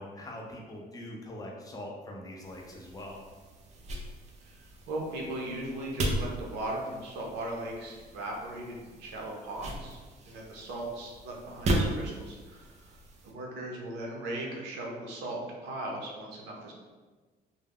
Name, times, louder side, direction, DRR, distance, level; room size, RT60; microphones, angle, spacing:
voice 1, 0.0-3.2, left 1 dB, 20° left, -1 dB, 0.5 m, -42 dB
sound 1, 2.4-13.3, right 1 dB, 40° right, 0.4 m, -37 dB
voice 2, 4.9-10.0 10.3-13.0 13.2-16.7, right 1 dB, 85° right, -1 dB, 0.6 m, -38 dB
2.2 x 2.0 x 3.4 m, 1.3 s
cardioid pair, 110°, 17 cm